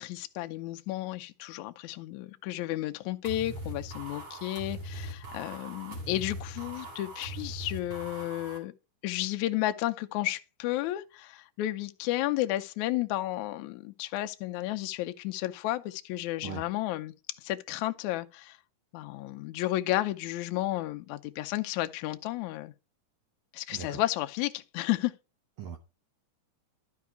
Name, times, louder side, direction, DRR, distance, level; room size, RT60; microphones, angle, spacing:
voice 1, 0.0-8.7 9.0-18.6 18.9-22.7 23.5-25.1, left 15 dB, 75° left, 1.8 m, -32 dB
sound 1, 3.2-8.6, right 1 dB, 35° right, 3.2 m, -41 dB
voice 2, 23.7-24.0 25.6-25.8, right 8 dB, 65° right, 1.8 m, -39 dB
12.5 x 4.7 x 4.6 m
omnidirectional pair, 3.9 m